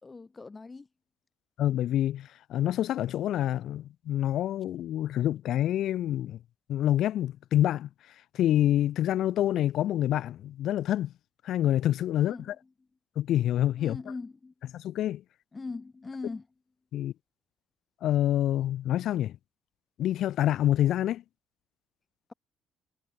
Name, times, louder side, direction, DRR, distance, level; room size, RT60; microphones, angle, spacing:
voice 1, 0.0-0.9 12.1-12.5 13.8-14.5 15.5-16.5, left 3 dB, 20° left, 3.6 m, -40 dB
voice 2, 1.6-6.4 6.7-7.9 8.3-11.1 11.4-12.3 13.2-14.0 14.7-15.2 16.9-17.1 18.0-19.4 20.0-21.2, left 12 dB, 65° left, 0.6 m, -27 dB
cardioid pair, 140°, 0 cm